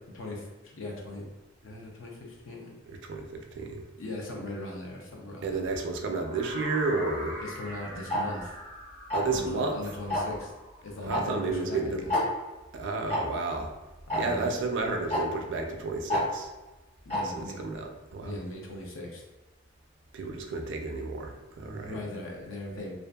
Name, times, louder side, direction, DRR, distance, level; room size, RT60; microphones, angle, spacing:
voice 1, 0.1-1.3 1.6-2.7 4.0-5.6 7.4-8.6 9.3-10.5 10.8-12.2 14.1-14.5 17.1-17.5 18.2-19.2 21.8-23.0, left 2 dB, 80° left, -1 dB, 0.6 m, -39 dB
voice 2, 2.9-3.8 5.4-7.4 9.1-9.8 11.1-12.1 12.7-13.7 14.1-16.5 17.2-18.4 20.1-22.0, right 3 dB, 65° right, 3 dB, 0.4 m, -32 dB
sound 1, 6.1-12.1, equal, 55° left, 1.4 m, -43 dB
Tick-tock, 8.1-8.2 9.1-9.4 10.1-10.4 11.1-11.2 11.5-11.6 12.1-12.2 13.1-13.2 14.1-14.2 15.1-15.2 16.1-16.2 17.1-17.2, left 1 dB, 30° left, 0.8 m, -27 dB
2.6 x 2.4 x 2.2 m, 1.1 s
head